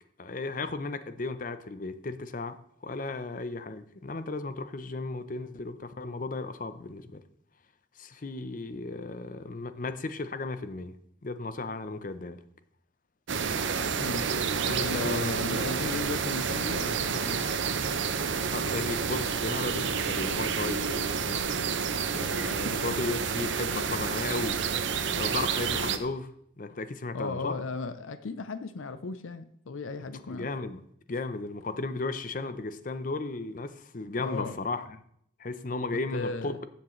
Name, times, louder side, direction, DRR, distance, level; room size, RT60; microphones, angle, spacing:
voice 1, 0.2-2.6 2.8-7.2 8.0-10.9 11.2-12.4 14.6-15.7 18.5-21.5 22.1-24.6 24.9-26.3 26.6-27.5 30.3-30.8 31.1-35.0 35.4-36.5, left 3 dB, 40° left, 0.6 m, -35 dB
sound 1, 13.3-26.0, right 6 dB, 70° right, 0.7 m, -29 dB
voice 2, 14.8-17.5 27.1-30.5 34.2-34.6 36.1-36.6, left 3 dB, 80° left, 0.6 m, -36 dB
13.0 x 7.3 x 3.1 m
head